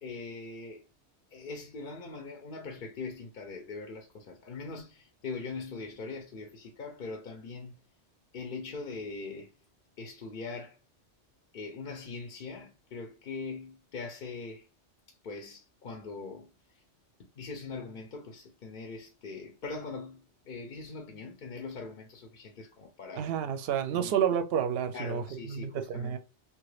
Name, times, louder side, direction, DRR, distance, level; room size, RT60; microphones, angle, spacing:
voice 1, 0.0-0.8 1.3-7.8 8.3-9.5 10.0-10.8 11.5-14.7 15.2-16.5 17.4-23.3 23.9-24.1 24.9-26.2, left 4 dB, 55° left, 0.6 m, -41 dB
voice 2, 23.2-25.2 25.5-26.2, right 8 dB, 65° right, 0.7 m, -30 dB
2.8 x 2.4 x 3.1 m
omnidirectional pair, 1.2 m